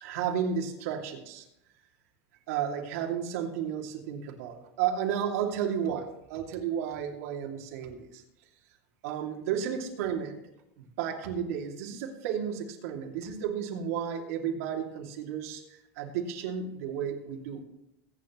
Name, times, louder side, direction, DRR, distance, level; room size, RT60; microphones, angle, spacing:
voice 1, 0.0-1.4 2.5-8.2 9.0-10.4 11.0-15.6 16.0-17.6, right 8 dB, 65° right, 1 dB, 2.6 m, -32 dB
21.0 x 9.3 x 3.1 m, 0.85 s
supercardioid pair, 160°, 9 cm